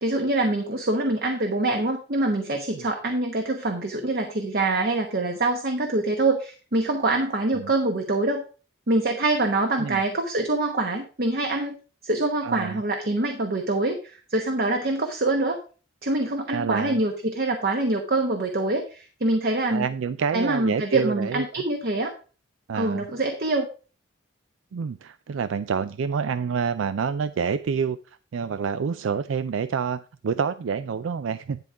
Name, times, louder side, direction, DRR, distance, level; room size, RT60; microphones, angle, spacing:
voice 1, 0.0-8.4 8.9-11.7 12.0-15.6 16.0-19.9 20.3-22.1 22.7-23.6, right 2 dB, 55° right, 4 dB, 1.1 m, -25 dB
voice 2, 12.4-12.8 16.5-17.0 19.7-21.4 22.7-23.1 24.7-28.0 28.3-31.6, right 6 dB, 85° right, 13 dB, 0.4 m, -27 dB
11.0 x 3.7 x 5.8 m, 0.37 s
head